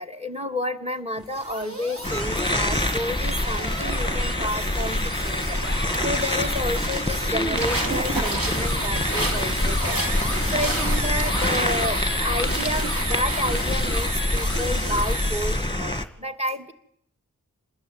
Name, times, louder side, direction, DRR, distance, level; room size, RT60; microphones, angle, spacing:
voice 1, 0.0-16.7, left 1 dB, 20° right, 10 dB, 2.6 m, -31 dB
sound 1, 1.1-15.8, right 1 dB, 40° right, 5.6 m, -32 dB
sound 2, 2.0-16.0, left 1 dB, 15° left, 2.2 m, -26 dB
sound 3, 5.6-13.8, right 2 dB, 70° right, 3.2 m, -33 dB
26.5 x 20.5 x 9.7 m, 0.73 s
wide cardioid pair, 50°, 35 cm